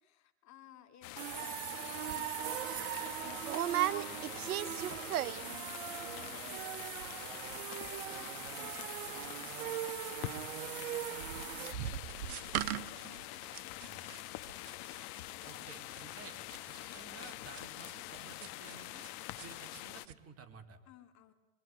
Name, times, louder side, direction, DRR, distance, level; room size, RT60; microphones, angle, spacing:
voice 1, 0.0-15.9 16.8-17.0 20.9-21.3, left 11 dB, 40° left, 7 dB, 2.7 m, -60 dB
sound 1, 1.0-20.1, left 18 dB, 55° left, 1.3 m, -45 dB
sound 2, 1.2-11.7, right 14 dB, 70° right, 1.3 m, -41 dB
sound 3, 2.1-2.2 2.6-2.8 3.4-5.6 5.9-6.3 6.5-6.6 6.8-7.2 7.5-9.8 10.0-19.1 19.4-19.8 20.1-20.2, right 12 dB, 85° right, 1.1 m, -38 dB
voice 2, 15.4-19.1 19.4-20.8, right 6 dB, 35° right, 4 dB, 3.7 m, -54 dB
25.5 x 23.5 x 9.4 m, 1.0 s
hypercardioid pair, 110°, 43 cm